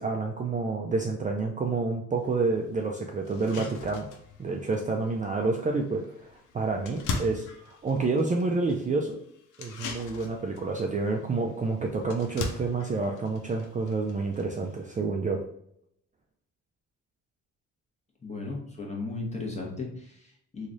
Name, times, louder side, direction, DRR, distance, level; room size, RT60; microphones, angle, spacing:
voice 1, 0.0-4.1 4.4-9.2 9.6-15.4, right 3 dB, 25° right, 1 dB, 0.4 m, -29 dB
sound 1, 2.2-2.3 2.8-2.9 3.3-14.9, left 4 dB, 80° left, 0.7 m, -41 dB
voice 2, 18.2-20.7, left 3 dB, 20° left, -1 dB, 1.1 m, -36 dB
3.1 x 2.4 x 3.9 m, 0.70 s
cardioid pair, 90°, 30 cm